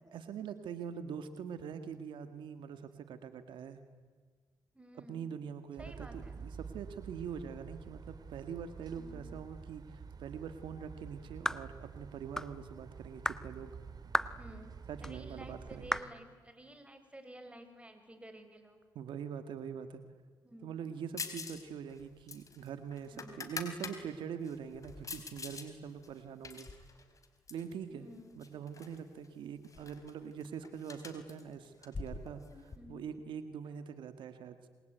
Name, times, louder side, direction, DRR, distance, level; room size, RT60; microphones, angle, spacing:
voice 1, 0.1-3.8 5.1-6.1 6.4-13.7 14.9-16.0 18.9-20.0 20.6-26.8 27.5-28.1 28.4-34.7, right 7 dB, 85° right, 10 dB, 1.8 m, -43 dB
voice 2, 4.7-5.3 5.8-6.3 8.9-9.3 14.4-18.8 20.4-20.7 23.1-23.5 27.9-28.5 32.7-33.2, equal, 15° right, 7 dB, 6.1 m, -53 dB
sound 1, 5.8-16.0, right 5 dB, 55° right, 2.3 m, -49 dB
sound 2, 11.5-11.7 12.4-12.6 13.3-13.4 14.1-14.4 15.0-15.1 15.9-16.1, left 1 dB, 5° left, 1.2 m, -33 dB
sound 3, 21.2-21.6 21.9-24.0 24.4-25.7 26.0-27.7 28.4-29.0 29.2-29.3 29.6-32.8, left 4 dB, 45° left, 4.4 m, -44 dB
27.5 x 23.0 x 9.3 m, 1.5 s
cardioid pair, 60°, 8 cm